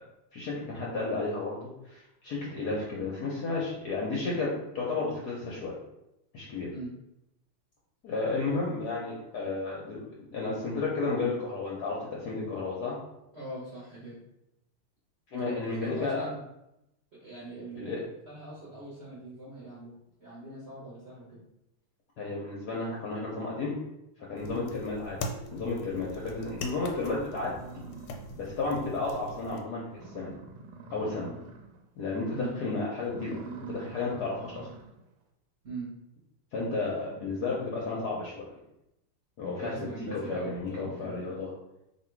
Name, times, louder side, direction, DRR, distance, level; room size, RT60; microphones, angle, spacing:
voice 1, 0.3-5.8 6.3-6.7 8.0-10.0 10.3-13.0 15.3-16.3 17.8-18.0 22.2-23.8 24.3-25.2 25.5-27.8 28.3-30.4 30.9-31.3 32.0-33.4 33.7-34.7 36.5-38.4 39.4-39.7 40.0-41.5, left 3 dB, 65° left, -4 dB, 1.0 m, -32 dB
voice 2, 13.3-14.2 15.4-15.5 15.8-16.4 17.1-19.9 20.2-21.4 24.5-24.7 32.3-32.6 35.6-35.9 39.6-41.1, right 2 dB, 50° right, -8 dB, 0.7 m, -41 dB
sound 1, 24.4-29.6, left 2 dB, 90° left, 1.5 m, -41 dB
sound 2, 27.4-28.7 29.1-29.2 29.6-29.7 29.9-31.8 32.2-32.5 33.0-35.0, right 4 dB, 75° right, 1.2 m, -45 dB
3.0 x 2.8 x 4.4 m, 0.87 s
omnidirectional pair, 2.4 m